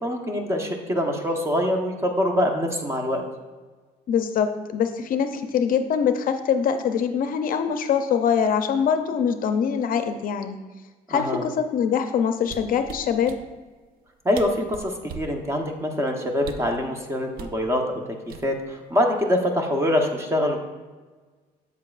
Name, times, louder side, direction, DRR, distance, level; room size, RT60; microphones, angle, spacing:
voice 1, 0.0-3.2 11.1-11.4 14.2-17.8 18.4-20.6, left 1 dB, 15° right, 2 dB, 1.0 m, -24 dB
voice 2, 4.1-10.6 11.1-13.3, left 7 dB, 55° left, 8 dB, 0.5 m, -23 dB
sound 1, 12.4-13.4 14.1-14.2 14.3-15.4 16.4-16.8 17.4-17.6 18.3-18.8 19.1-19.4, right 5 dB, 60° right, 0.6 m, -39 dB
8.2 x 7.5 x 2.5 m, 1.4 s
cardioid pair, 110°, 17 cm